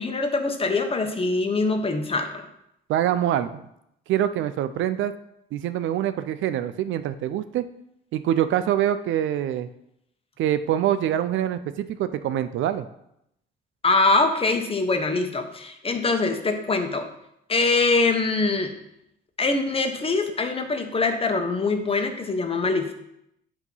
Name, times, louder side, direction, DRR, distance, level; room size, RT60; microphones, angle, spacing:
voice 1, 0.0-2.5 13.8-17.1 17.5-18.7 19.4-22.9, left 3 dB, 30° left, 6 dB, 0.9 m, -23 dB
voice 2, 2.9-3.5 4.1-5.1 5.5-7.7 8.1-9.7 10.4-12.9, right 11 dB, 75° right, 11 dB, 0.5 m, -24 dB
8.3 x 3.0 x 5.4 m, 0.79 s
cardioid pair, 90°, 20 cm